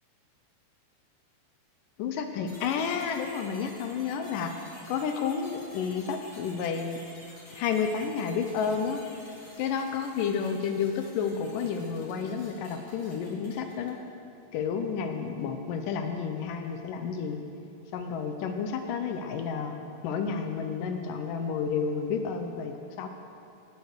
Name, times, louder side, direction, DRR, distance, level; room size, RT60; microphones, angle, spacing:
voice 1, 2.0-4.5 4.9-7.0 7.5-9.0 9.6-14.0 14.5-17.4 17.9-19.8 20.0-23.1, left 6 dB, 80° left, 5 dB, 2.0 m, -31 dB
sound 1, 2.5-14.1, left 1 dB, 30° left, 3.5 m, -51 dB
18.5 x 6.9 x 6.5 m, 2.7 s
omnidirectional pair, 4.5 m